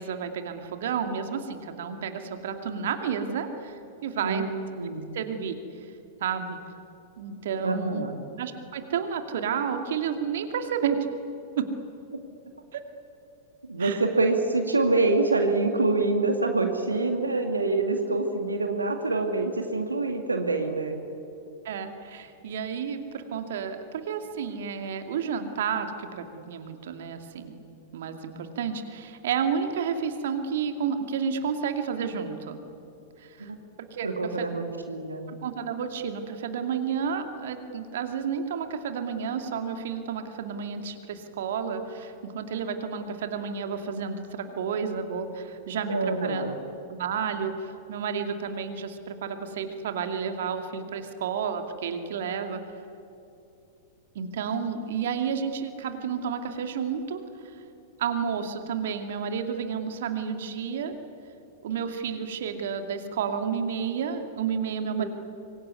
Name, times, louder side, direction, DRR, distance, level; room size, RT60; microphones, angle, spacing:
voice 1, 0.0-4.4 5.1-5.6 6.2-6.6 7.2-8.1 8.4-11.0 11.6-11.7 12.7-12.8 13.8-14.0 21.6-27.6 27.9-32.6 33.2-33.5 33.9-34.1 34.4-34.5 35.3-46.5 46.9-52.6 54.1-57.2 58.0-60.9 61.6-65.0, right 7 dB, 60° right, 6 dB, 2.4 m, -31 dB
voice 2, 4.8-5.1 7.6-8.1 12.1-12.2 13.7-21.0 33.5-33.6 34.0-35.3 45.9-46.5 65.0-65.1, right 3 dB, 85° right, 5 dB, 2.2 m, -26 dB
25.5 x 22.5 x 9.7 m, 2.7 s
figure-of-eight pair, 95°, 0 cm